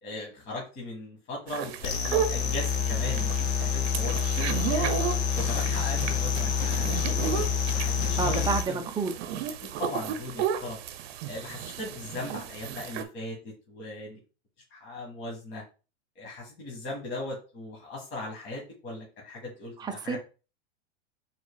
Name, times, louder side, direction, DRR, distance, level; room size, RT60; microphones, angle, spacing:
voice 1, 0.0-4.9 5.4-7.2 7.7-8.8 9.6-10.8 11.3-14.2 14.7-15.6 16.2-20.2, left 2 dB, 30° left, -3 dB, 1.8 m, -38 dB
sound 1, 1.5-13.0, right 9 dB, 60° right, 0.7 m, -34 dB
sound 2, 1.8-8.6, left 7 dB, 65° left, 0.9 m, -27 dB
voice 2, 8.2-9.1 19.8-20.2, right 5 dB, 10° right, 4 dB, 0.5 m, -29 dB
4.8 x 4.0 x 2.3 m, 0.33 s
hypercardioid pair, 125°, 35 cm